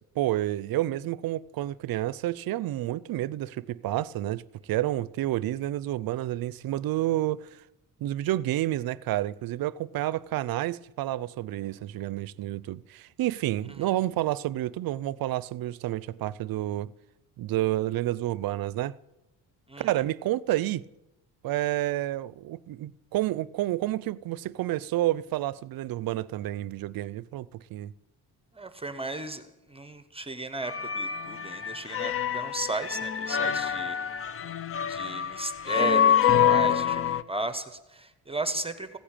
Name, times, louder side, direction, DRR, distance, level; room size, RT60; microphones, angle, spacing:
voice 1, 0.2-7.6 8.0-16.9 17.4-19.0 19.8-20.8 21.4-27.9, right 14 dB, 65° right, 0.5 m, -29 dB
voice 2, 19.7-20.0 28.5-29.4 29.7-34.0 34.9-39.0, right 2 dB, 15° right, 0.9 m, -35 dB
sound 1, 30.6-37.2, left 8 dB, 35° left, 0.6 m, -26 dB
16.0 x 10.0 x 8.8 m
cardioid pair, 120°, 39 cm